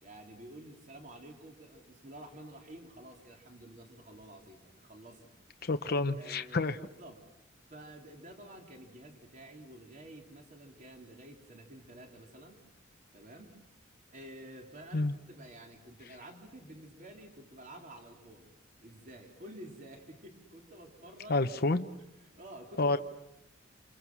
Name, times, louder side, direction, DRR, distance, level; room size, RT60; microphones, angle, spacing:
voice 1, 0.0-5.3 6.2-7.2 7.7-12.6 13.1-13.5 14.1-18.5 18.8-21.4 22.2-22.9, right 1 dB, 40° right, 1 dB, 3.7 m, -50 dB
voice 2, 5.6-6.8 14.9-15.1 21.3-21.9 22.8-23.0, left 2 dB, 50° left, 8 dB, 0.9 m, -29 dB
28.0 x 27.5 x 6.2 m, 0.92 s
head